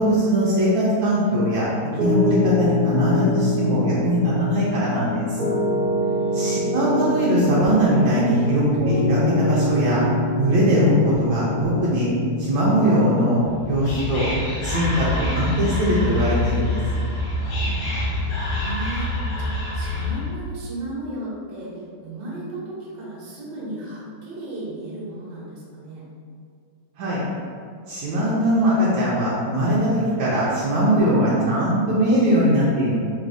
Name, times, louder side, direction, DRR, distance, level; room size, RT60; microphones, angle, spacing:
voice 1, 0.0-1.7 2.0-5.3 6.3-10.1 10.4-12.1 12.4-13.4 13.7-14.3 14.6-16.8 27.0-27.2 27.9-33.0, equal, 80° right, -8 dB, 1.5 m, -20 dB
Piano, 2.0-15.3, left 1 dB, 50° right, 0.6 m, -25 dB
voice 2, 6.2-6.8 17.9-19.1 19.4-26.1, right 1 dB, 65° right, -6 dB, 1.7 m, -35 dB
Whispering, 13.4-20.4, left 1 dB, 65° left, 1.6 m, -26 dB
4.1 x 2.7 x 4.7 m, 2.2 s
omnidirectional pair, 2.1 m